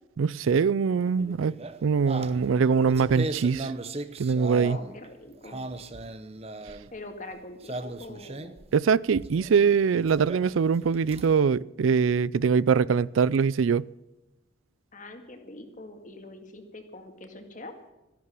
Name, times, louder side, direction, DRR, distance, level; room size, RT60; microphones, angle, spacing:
voice 1, 0.2-1.6 1.8-3.7 4.2-4.8 8.7-13.9, right 6 dB, 80° right, 0.4 m, -23 dB
sound 1, 1.2-5.1 5.4-7.0 7.6-8.7 9.1-9.6 10.0-11.4, right 2 dB, 30° right, 0.8 m, -37 dB
voice 2, 4.6-5.6 6.9-8.6 14.9-17.7, left 2 dB, 40° left, 2.0 m, -43 dB
14.0 x 11.5 x 7.6 m
head